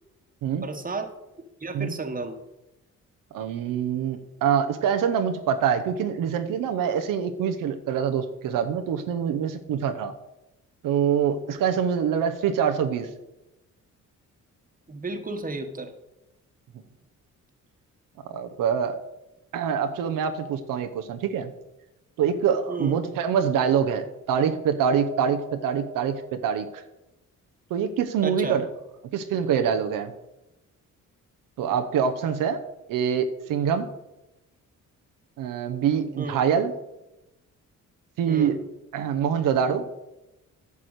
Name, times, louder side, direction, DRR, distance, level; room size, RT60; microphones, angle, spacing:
voice 1, 0.5-2.4 14.9-15.9 22.7-23.0 28.2-28.6 36.2-36.4 38.3-38.6, right 3 dB, 25° right, 6 dB, 1.4 m, -33 dB
voice 2, 3.3-10.1 10.8-13.1 18.2-19.0 19.5-21.5 22.2-26.8 27.7-28.7 29.1-30.1 31.6-32.6 32.9-33.9 35.4-36.7 38.2-38.6 38.9-39.8, right 7 dB, 85° right, 6 dB, 0.9 m, -25 dB
10.0 x 4.8 x 8.0 m, 0.94 s
cardioid pair, 80°, 32 cm